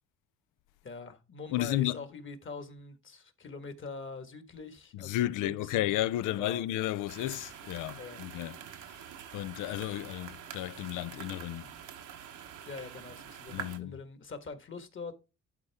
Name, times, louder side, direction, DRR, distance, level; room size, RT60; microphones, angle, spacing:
voice 1, 0.8-6.7 8.0-8.2 12.6-15.2, left 4 dB, 40° left, 1.6 m, -44 dB
voice 2, 1.5-2.0 4.9-8.6 9.3-11.7 13.5-13.9, left 14 dB, 85° left, 0.5 m, -32 dB
sound 1, 7.1-13.8, right 9 dB, 80° right, 1.1 m, -46 dB
11.5 x 4.3 x 3.5 m
cardioid pair, 90°, 30 cm